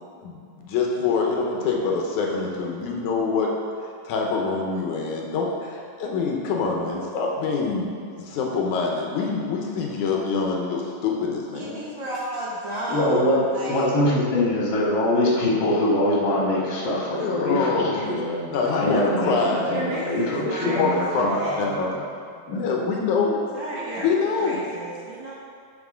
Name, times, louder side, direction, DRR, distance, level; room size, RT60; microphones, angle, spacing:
voice 1, 0.2-3.6 4.1-11.8 17.1-18.0 18.5-19.7 20.6-21.9 22.5-23.4 24.0-24.6, left 4 dB, 70° left, -1 dB, 2.2 m, -25 dB
voice 2, 11.5-13.9 19.7-21.7 23.5-24.1 24.4-25.4, right 1 dB, 70° right, -6 dB, 1.1 m, -33 dB
voice 3, 12.9-13.4 13.6-22.0 22.5-22.7, left 1 dB, 45° left, -5 dB, 1.7 m, -23 dB
11.5 x 5.8 x 3.7 m, 2.2 s
omnidirectional pair, 3.9 m